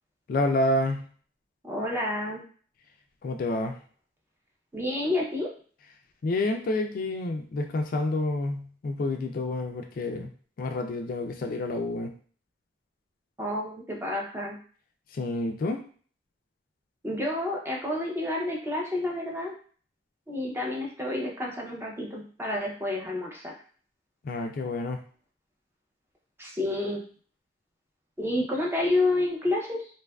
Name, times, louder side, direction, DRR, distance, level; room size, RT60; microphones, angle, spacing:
voice 1, 0.3-1.1 3.2-3.8 6.2-10.3 10.6-12.1 15.1-15.8 24.2-25.0, left 2 dB, 50° left, 4 dB, 0.3 m, -28 dB
voice 2, 1.6-2.4 4.7-5.5 13.4-14.6 17.0-19.5 20.3-23.5 26.4-27.0 28.2-29.8, left 1 dB, 15° right, -1 dB, 0.5 m, -29 dB
2.7 x 2.3 x 2.2 m, 0.44 s
head